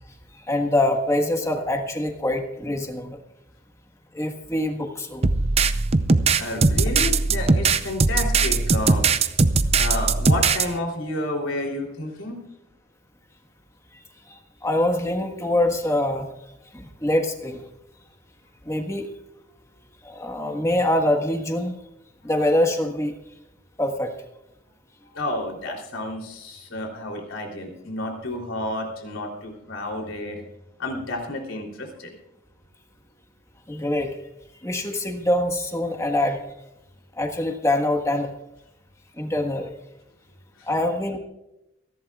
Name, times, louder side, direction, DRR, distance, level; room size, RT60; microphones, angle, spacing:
voice 1, 0.3-3.2 4.1-5.3 14.3-16.3 16.7-17.6 18.6-19.1 20.0-21.8 22.2-23.1 23.8-24.1 33.7-34.2 34.6-36.4 37.2-38.3 39.2-39.7 40.7-41.2, left 1 dB, 15° left, 4 dB, 1.5 m, -24 dB
sound 1, 5.2-10.7, right 4 dB, 30° right, 0.6 m, -20 dB
voice 2, 6.4-9.1 9.7-12.4 25.1-30.4 30.8-32.1 40.6-40.7, left 1 dB, 85° left, 1 dB, 3.4 m, -30 dB
27.5 x 11.5 x 2.4 m, 0.88 s
head